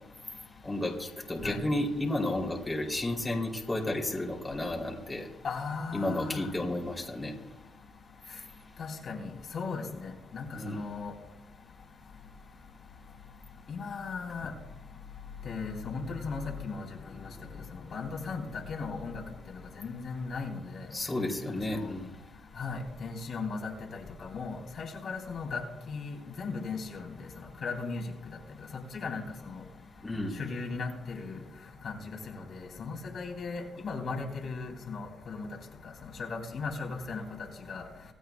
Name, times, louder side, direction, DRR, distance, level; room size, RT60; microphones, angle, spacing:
voice 1, 0.6-5.3 5.9-7.3 10.5-10.8 20.9-22.1 30.0-30.4, left 1 dB, 15° left, -1 dB, 2.9 m, -32 dB
voice 2, 5.4-6.5 8.8-11.1 13.7-14.5 15.4-16.8 17.9-19.2 19.8-20.9 21.7-21.9 22.6-23.7 24.2-25.6 25.9-27.1 27.6-28.0 28.9-29.6 30.4-31.4 31.8-31.9 32.3-35.5 36.2-37.2 37.7-37.8, left 4 dB, 55° left, 0 dB, 2.6 m, -36 dB
26.0 x 9.2 x 2.2 m, 1.0 s
cardioid pair, 90°, 0 cm